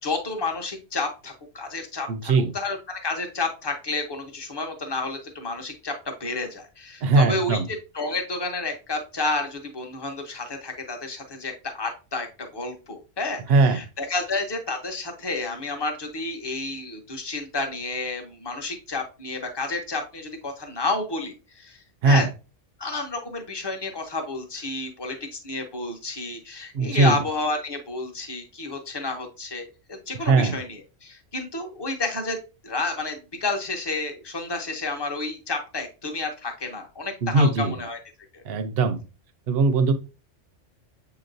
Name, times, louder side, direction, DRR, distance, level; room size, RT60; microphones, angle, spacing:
voice 1, 0.0-5.9 6.2-7.6 7.9-21.8 22.0-22.3 22.8-32.4 32.6-38.0 38.3-38.4, left 3 dB, 25° left, 3 dB, 0.7 m, -30 dB
voice 2, 2.1-2.5 7.0-7.7 13.5-13.8 22.0-22.3 26.7-27.2 30.2-30.6 37.2-37.8 38.4-39.0 39.5-39.9, right 3 dB, 60° right, 9 dB, 0.8 m, -20 dB
6.9 x 3.0 x 2.5 m, 0.31 s
omnidirectional pair, 1.3 m